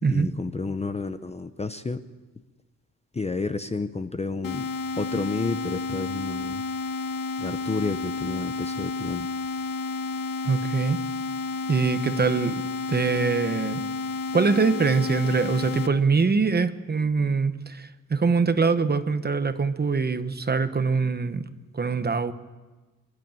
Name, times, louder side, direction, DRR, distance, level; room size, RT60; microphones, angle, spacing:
voice 1, 0.1-2.0 3.1-4.7 5.0-6.6 7.4-9.3, left 3 dB, 20° left, 9 dB, 0.7 m, -30 dB
sound 1, 4.4-15.9, left 3 dB, 65° left, 1.6 m, -31 dB
voice 2, 10.4-11.0 11.7-13.8 14.3-21.4 21.7-22.3, right 4 dB, 30° right, 10 dB, 1.0 m, -23 dB
27.0 x 11.5 x 9.0 m, 1.3 s
wide cardioid pair, 150°, 35 cm